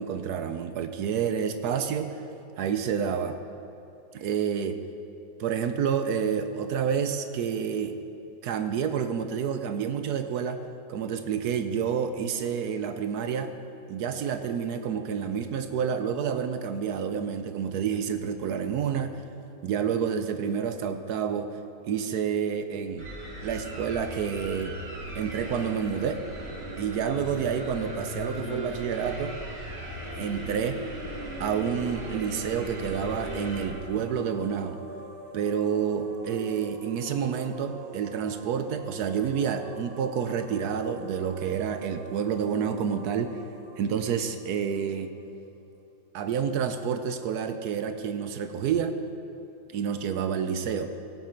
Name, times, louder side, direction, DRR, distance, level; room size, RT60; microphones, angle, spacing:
voice 1, 0.0-2.2 2.6-3.4 4.1-4.8 5.4-7.9 8.4-10.6 10.9-13.5 13.9-19.2 19.6-21.6 21.9-23.1 23.4-24.8 25.1-26.2 26.8-29.4 30.1-30.8 31.4-34.8 35.3-43.4 43.8-45.1 46.1-49.0 49.7-50.9, right 7 dB, 70° right, 9 dB, 1.0 m, -29 dB
sound 1, 23.0-33.7, right 1 dB, 35° right, 1.8 m, -38 dB
sound 2, 30.7-45.4, right 1 dB, 50° right, 1.9 m, -45 dB
16.5 x 8.2 x 4.4 m, 2.8 s
omnidirectional pair, 2.0 m